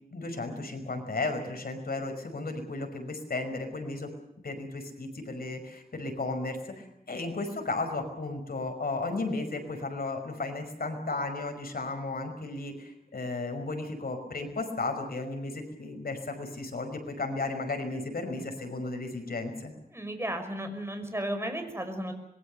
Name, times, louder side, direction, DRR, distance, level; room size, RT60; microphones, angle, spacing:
voice 1, 0.1-4.1 4.4-19.7, left 3 dB, 85° left, 5 dB, 5.5 m, -34 dB
voice 2, 19.9-22.1, right 1 dB, 15° right, 6 dB, 5.6 m, -34 dB
25.5 x 22.0 x 6.7 m, 0.82 s
wide cardioid pair, 75°, 15 cm